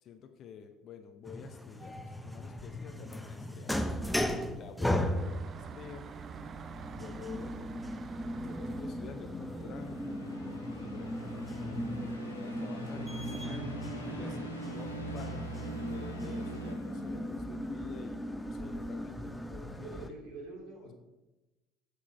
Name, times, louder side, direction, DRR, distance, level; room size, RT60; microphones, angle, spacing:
voice 1, 0.0-3.8 4.5-6.1 6.4-6.6 6.9-7.7 8.4-10.0 10.8-11.1 12.3-13.8 14.1-20.1, left 7 dB, 45° left, 7 dB, 0.7 m, -49 dB
sound 1, 1.3-20.1, equal, 5° left, 0.7 m, -37 dB
sound 2, 5.2-11.6, right 6 dB, 35° right, 0.6 m, -48 dB
sound 3, 9.3-17.6, right 2 dB, 85° left, 1.1 m, -44 dB
voice 2, 16.3-16.8 19.8-20.9, right 3 dB, 55° right, -1 dB, 2.7 m, -47 dB
8.3 x 6.4 x 4.8 m, 1.1 s
figure-of-eight pair, 65°, 0 cm